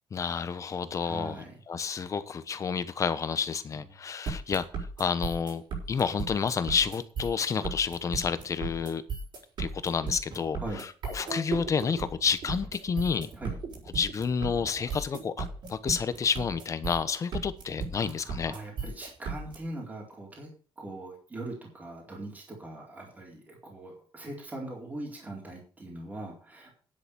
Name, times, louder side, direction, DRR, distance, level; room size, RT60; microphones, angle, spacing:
voice 1, 0.1-4.6 5.0-9.0 9.6-10.6 11.1-13.3 14.0-18.5, left 6 dB, 35° left, 13 dB, 1.1 m, -30 dB
voice 2, 1.0-1.5 3.7-3.9 10.6-10.8 13.3-13.6 18.1-20.5 20.8-26.7, right 2 dB, 15° right, -2 dB, 4.2 m, -41 dB
sound 1, 4.3-19.6, right 5 dB, 55° right, 5.6 m, -36 dB
10.0 x 8.1 x 6.9 m, 0.39 s
cardioid pair, 160°, 10 cm